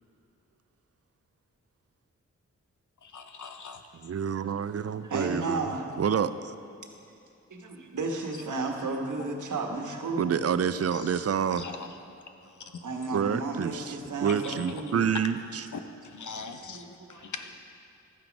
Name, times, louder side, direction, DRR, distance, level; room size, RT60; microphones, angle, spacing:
voice 1, 3.0-3.8 11.6-11.9 15.7-15.8 16.1-17.5, left 5 dB, 80° left, 7 dB, 0.9 m, -41 dB
voice 2, 3.9-5.6 6.0-6.5 10.2-11.7 13.1-13.9 14.2-15.7, right 7 dB, 55° right, 13 dB, 0.5 m, -28 dB
voice 3, 5.0-5.9 7.5-10.4 11.5-11.6 12.6-15.1 15.6-15.7 16.6-17.5, right 3 dB, 85° right, 3 dB, 1.3 m, -33 dB
13.0 x 9.2 x 5.2 m, 2.6 s
wide cardioid pair, 110°, 30 cm